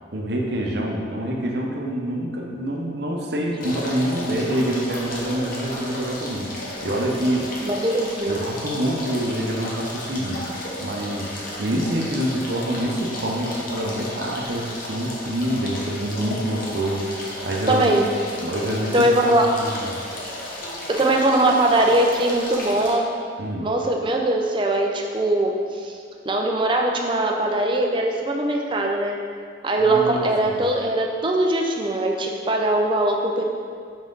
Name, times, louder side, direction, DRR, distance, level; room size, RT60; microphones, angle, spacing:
voice 1, 0.1-7.5 8.3-10.4 10.8-11.3 11.6-17.9 18.4-20.1 23.4-23.7 29.8-30.6, right 1 dB, 60° right, 0 dB, 0.8 m, -26 dB
sound 1, 3.6-22.9, left 1 dB, 50° left, 1.0 m, -34 dB
voice 2, 7.6-8.4 17.7-18.0 18.9-19.5 20.9-23.0 23.6-25.5 25.8-25.9 26.3-29.2 29.6-33.4, right 1 dB, 25° right, 1 dB, 0.5 m, -21 dB
5.5 x 5.0 x 3.9 m, 2.2 s
head